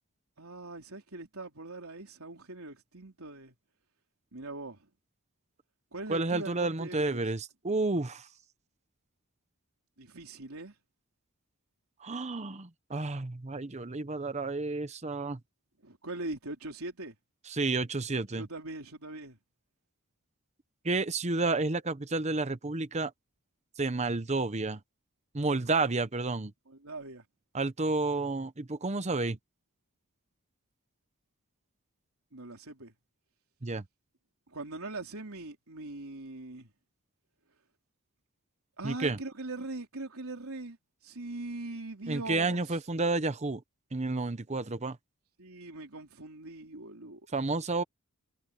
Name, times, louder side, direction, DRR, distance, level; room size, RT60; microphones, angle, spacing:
voice 1, 0.4-3.5 4.3-4.9 5.9-7.2 10.0-10.7 15.8-17.1 18.4-19.4 26.7-27.2 32.3-32.9 34.5-36.7 38.8-40.8 41.0-42.7 45.4-47.2, right 2 dB, 75° right, 3.7 m, -41 dB
voice 2, 6.1-8.3 12.0-15.4 17.5-18.5 20.8-23.1 23.8-24.8 25.3-26.5 27.5-29.4 33.6-33.8 38.8-39.2 42.1-43.6 43.9-45.0 47.3-47.8, right 3 dB, 30° right, 0.9 m, -31 dB
head